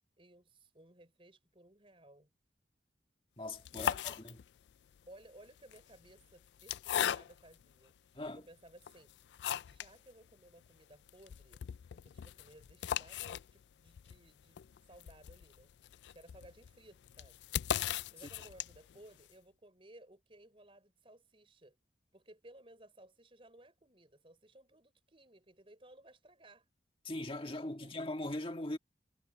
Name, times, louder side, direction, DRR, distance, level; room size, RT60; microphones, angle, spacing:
voice 1, 0.2-2.3 3.7-4.2 5.1-9.1 9.6-11.6 11.9-14.6 14.9-15.7 16.1-17.4 18.1-21.8 22.1-26.7 27.8-27.9, right 1 dB, 30° right, 4.8 m, -59 dB
voice 2, 3.4-4.4 8.1-8.4 27.0-28.8, left 1 dB, 30° left, 1.7 m, -40 dB
sound 1, 3.5-4.7 5.6-7.6 8.2-8.3 8.8-10.0 10.3-10.4 10.6-10.7 11.1-19.0, left 10 dB, 80° left, 0.3 m, -38 dB
head